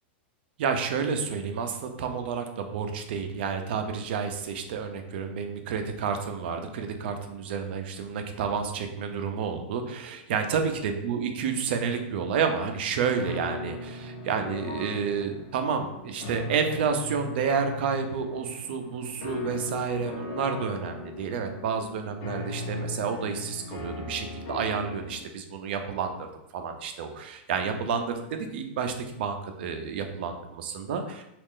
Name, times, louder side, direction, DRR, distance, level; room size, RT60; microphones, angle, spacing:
voice 1, 0.6-31.2, right 6 dB, 60° right, 5 dB, 0.5 m, -30 dB
sound 1, 13.2-25.2, left 2 dB, 45° left, 0.8 m, -38 dB
3.1 x 2.4 x 3.6 m, 0.84 s
supercardioid pair, 155°, 6 cm